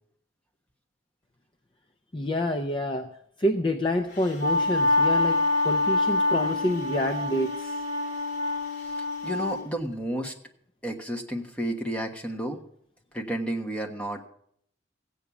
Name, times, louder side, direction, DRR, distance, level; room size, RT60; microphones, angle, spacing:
voice 1, 2.1-3.1 3.4-7.8, left 1 dB, 25° left, 6 dB, 0.5 m, -28 dB
Wind instrument woodwind instrument, 4.2-9.6, left 2 dB, 55° left, 2.7 m, -26 dB
voice 2, 9.2-10.3 10.8-12.6 13.1-14.3, right 1 dB, 5° left, 3 dB, 1.2 m, -31 dB
15.5 x 8.4 x 6.0 m, 0.68 s
head